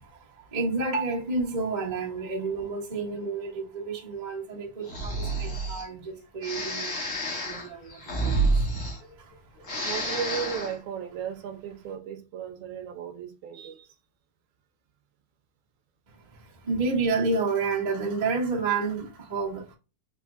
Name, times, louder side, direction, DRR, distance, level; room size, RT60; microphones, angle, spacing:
voice 1, 0.0-9.9 16.1-19.7, right 4 dB, 40° right, 0.6 m, -31 dB
Breathing, 4.8-5.9 6.4-9.3 9.6-10.8, right 2 dB, 75° left, 0.7 m, -29 dB
voice 2, 9.9-13.9, right 8 dB, 80° right, 1.9 m, -35 dB
4.8 x 3.5 x 2.3 m
omnidirectional pair, 3.5 m